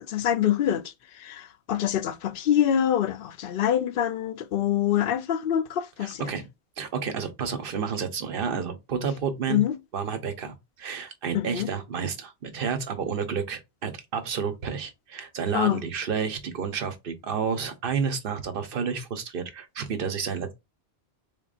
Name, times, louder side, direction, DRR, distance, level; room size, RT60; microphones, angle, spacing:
voice 1, 0.1-0.8 1.2-6.3 9.5-9.8 11.3-11.7 15.5-15.8, left 10 dB, 65° left, 0.7 m, -25 dB
voice 2, 6.0-6.5 6.8-9.6 9.9-20.5, right 6 dB, 60° right, 0.9 m, -30 dB
4.1 x 3.7 x 2.4 m
omnidirectional pair, 1.1 m